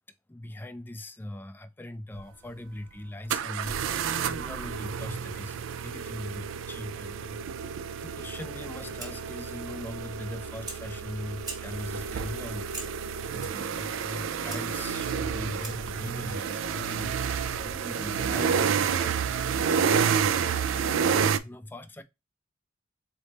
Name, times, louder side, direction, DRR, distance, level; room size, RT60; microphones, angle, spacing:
voice 1, 0.3-12.7 12.9-19.5 21.2-22.0, left 1 dB, 10° left, 0.3 m, -40 dB
sound 1, 2.1-2.2 3.3-21.4, right 7 dB, 80° right, 0.4 m, -30 dB
Fire, 8.5-16.0, right 2 dB, 20° right, 1.3 m, -46 dB
4.0 x 3.4 x 2.8 m
head